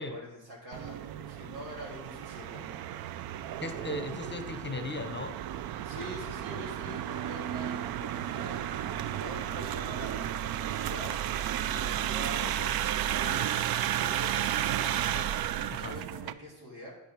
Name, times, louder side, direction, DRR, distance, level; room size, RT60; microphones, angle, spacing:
voice 1, 0.0-2.7 5.8-13.6 13.9-15.3 15.7-16.9, equal, 90° right, -4 dB, 3.1 m, -44 dB
sound 1, 0.7-16.3, right 11 dB, 60° right, 0.5 m, -33 dB
voice 2, 3.6-5.4 15.7-16.0, left 2 dB, 25° left, 9 dB, 0.7 m, -37 dB
9.1 x 5.2 x 4.5 m, 0.94 s
cardioid pair, 75°, 43 cm